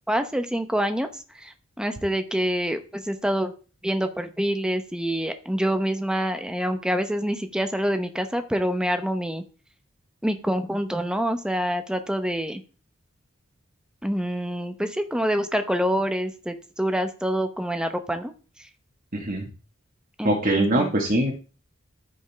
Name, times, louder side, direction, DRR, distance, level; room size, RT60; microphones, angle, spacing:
voice 1, 0.1-1.1 1.4-3.5 3.8-9.4 10.2-12.6 14.0-18.3 20.2-20.9, equal, 5° right, 7 dB, 0.9 m, -26 dB
voice 2, 19.1-19.4 20.2-21.3, right 1 dB, 45° right, -2 dB, 1.6 m, -22 dB
14.0 x 5.4 x 3.5 m, 0.36 s
head